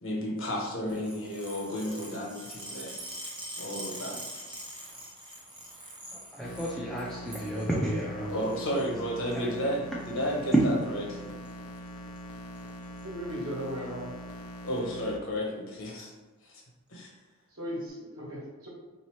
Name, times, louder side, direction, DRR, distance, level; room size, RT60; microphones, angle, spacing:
voice 1, 0.0-2.9 3.6-4.2 8.3-11.3 14.6-16.1 16.4-16.5 16.9-17.1, equal, 65° left, -2 dB, 1.0 m, -32 dB
sound 1, 0.9-6.8 7.1-7.7 8.4-8.9 10.0-10.2 11.2-11.5 11.8-11.9 12.2-12.3 12.6-13.0 13.6-13.7 14.7-14.8, right 1 dB, 20° right, 0.8 m, -43 dB
sound 2, 2.3-3.2 4.2-4.4 5.7-5.9 7.0-7.6, right 3 dB, 50° right, 1.1 m, -49 dB
voice 2, 6.1-8.4 9.4-9.7, equal, ahead, -5 dB, 0.3 m, -33 dB
sound 3, 6.4-15.2, equal, 85° left, 0.4 m, -43 dB
voice 3, 13.0-14.1 17.5-18.7, equal, 75° right, -4 dB, 1.2 m, -37 dB
3.8 x 2.7 x 3.1 m, 1.3 s
head